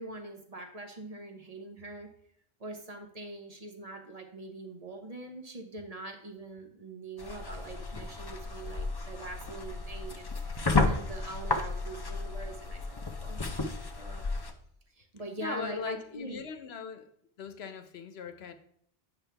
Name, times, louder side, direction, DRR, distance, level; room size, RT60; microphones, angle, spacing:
voice 1, 0.0-2.1 2.6-13.6 14.0-14.2 14.9-16.4, right 2 dB, 40° right, 1.0 m, -43 dB
sound 1, 7.2-14.5, left 3 dB, 30° left, 0.6 m, -33 dB
voice 2, 15.4-17.1 17.4-18.5, left 6 dB, 80° left, 1.0 m, -39 dB
8.9 x 5.9 x 3.4 m
omnidirectional pair, 1.1 m